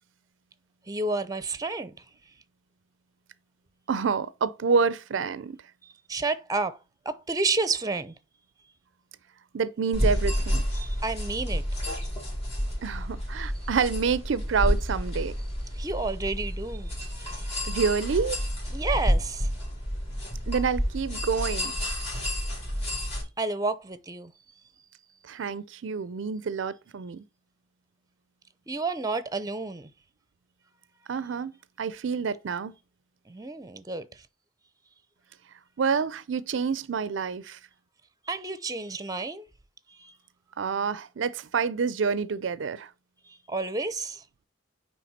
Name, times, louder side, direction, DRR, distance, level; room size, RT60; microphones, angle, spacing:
voice 1, 0.9-2.1 5.8-6.8 7.0-8.1 10.7-11.6 15.7-17.8 18.7-19.5 23.4-24.3 28.7-29.9 33.3-34.3 38.2-39.4 39.9-40.2 43.3-44.2, right 3 dB, 20° right, 0.7 m, -31 dB
voice 2, 3.9-5.6 9.5-10.6 12.8-15.4 17.6-18.4 20.5-21.7 25.2-27.2 31.1-32.7 35.8-37.6 40.6-42.9, right 5 dB, 75° right, 0.4 m, -28 dB
sound 1, 9.9-23.2, equal, 35° left, 4.1 m, -30 dB
9.3 x 3.4 x 4.2 m
head